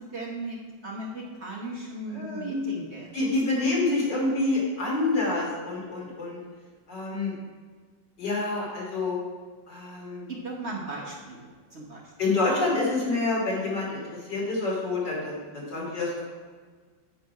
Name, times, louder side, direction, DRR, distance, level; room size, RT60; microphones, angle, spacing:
voice 1, 0.0-3.2 10.3-11.4 11.7-12.1, right 2 dB, 45° right, -2 dB, 1.2 m, -37 dB
voice 2, 2.1-2.7 3.1-6.4 6.9-7.3 8.2-9.2 9.7-10.3 12.2-16.3, left 2 dB, 70° left, -4 dB, 3.3 m, -27 dB
9.3 x 5.7 x 4.8 m, 1.5 s
omnidirectional pair, 2.0 m